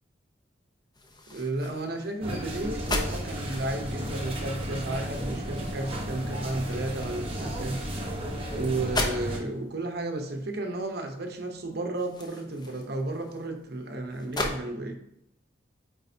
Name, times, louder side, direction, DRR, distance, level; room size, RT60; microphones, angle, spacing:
sound 1, 0.9-14.6, left 1 dB, 20° left, 0.7 m, -39 dB
voice 1, 1.3-7.8 8.5-15.0, right 2 dB, 55° right, 4 dB, 0.9 m, -33 dB
sound 2, 2.2-9.4, equal, 30° right, 1.1 m, -34 dB
8.6 x 4.1 x 2.8 m, 0.77 s
head